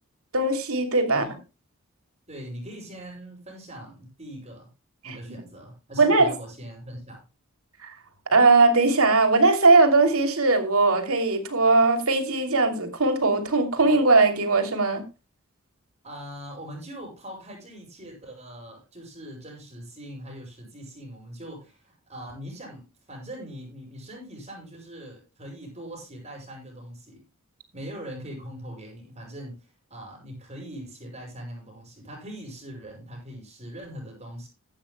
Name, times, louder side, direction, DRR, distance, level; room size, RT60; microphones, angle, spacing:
voice 1, 0.3-1.3 5.0-5.2 6.0-6.3 7.8-7.9 8.3-15.0, right 3 dB, 80° right, 6 dB, 2.9 m, -20 dB
voice 2, 2.3-4.7 5.0-7.2 16.0-27.2 27.7-34.5, equal, 30° right, 0 dB, 8.0 m, -41 dB
16.0 x 12.5 x 2.2 m, 0.29 s
head